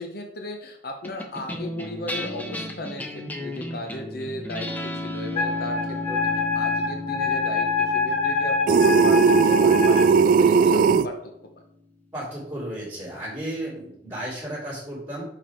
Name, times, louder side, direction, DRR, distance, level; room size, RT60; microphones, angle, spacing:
voice 1, 0.0-11.2, left 2 dB, 60° left, 4 dB, 0.8 m, -36 dB
sound 1, 1.0-11.6, left 1 dB, 10° left, 0.8 m, -35 dB
Wind instrument woodwind instrument, 5.3-10.1, left 4 dB, 35° left, 1.6 m, -25 dB
sound 2, 8.7-11.1, right 5 dB, 50° right, 0.3 m, -17 dB
voice 2, 12.1-15.2, right 1 dB, 15° right, -8 dB, 2.5 m, -33 dB
5.8 x 4.9 x 4.5 m, 0.72 s
head